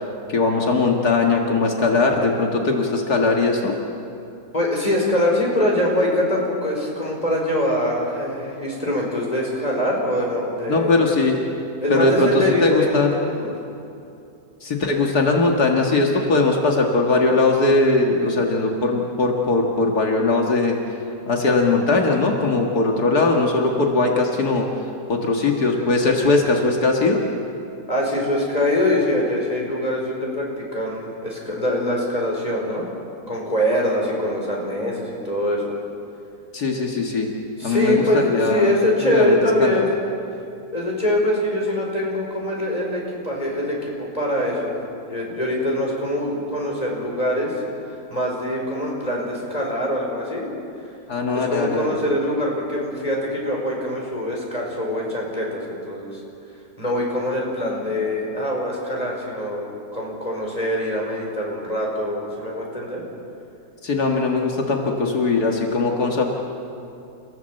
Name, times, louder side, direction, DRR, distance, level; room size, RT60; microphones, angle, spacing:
voice 1, 0.3-3.7 10.7-11.4 11.9-12.3 12.6-13.1 14.6-20.8 21.3-24.7 25.1-27.2 36.5-37.3 37.6-38.7 39.0-39.8 51.1-51.9 63.8-66.2, left 3 dB, 80° left, 1 dB, 2.3 m, -20 dB
voice 2, 4.5-10.9 11.8-13.5 27.9-32.8 33.3-35.7 37.6-39.9 40.7-44.8 45.1-47.5 48.1-50.5 51.3-56.2 56.8-63.0, left 1 dB, 25° left, -2 dB, 5.3 m, -23 dB
30.0 x 15.5 x 7.9 m, 2.7 s
omnidirectional pair, 1.7 m